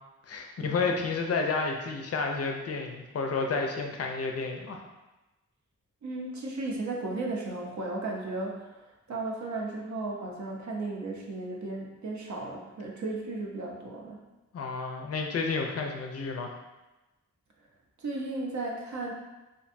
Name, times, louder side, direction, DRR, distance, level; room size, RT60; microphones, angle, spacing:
voice 1, 0.3-4.8 14.5-16.5, left 4 dB, 50° left, 3 dB, 0.4 m, -31 dB
voice 2, 6.0-8.6 9.1-14.2 18.0-19.1, right 2 dB, 65° right, -1 dB, 0.6 m, -35 dB
2.5 x 2.1 x 2.5 m, 1.1 s
cardioid pair, 55°, 31 cm